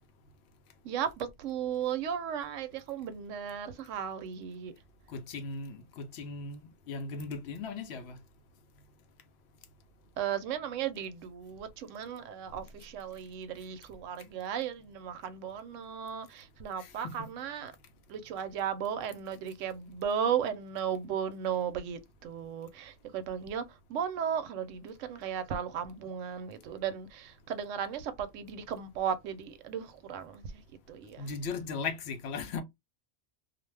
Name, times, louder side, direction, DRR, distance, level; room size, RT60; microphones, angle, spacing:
voice 1, 0.8-4.7 10.2-17.7 18.1-31.3, right 8 dB, 70° right, 0.9 m, -35 dB
voice 2, 5.1-6.6 6.9-8.2 16.8-17.3 31.2-32.6, left 4 dB, 65° left, 0.8 m, -37 dB
2.5 x 2.1 x 3.2 m
omnidirectional pair, 1.4 m